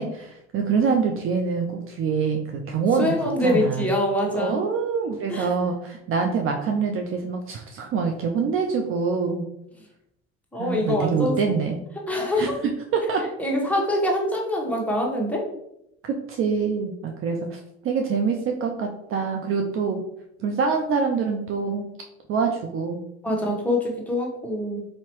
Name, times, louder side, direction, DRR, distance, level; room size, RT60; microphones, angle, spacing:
voice 1, 0.0-3.2 3.4-3.9 4.4-9.4 10.6-11.8 12.4-12.5 12.9-13.3 16.1-20.0 20.4-21.9 22.3-23.0, right 5 dB, 40° right, 3 dB, 0.5 m, -25 dB
voice 2, 3.0-4.6 5.3-5.5 10.5-11.4 12.1-12.5 13.4-15.5 23.2-24.9, left 1 dB, 5° left, -2 dB, 1.2 m, -24 dB
4.3 x 2.8 x 3.0 m, 0.81 s
hypercardioid pair, 85°, 33 cm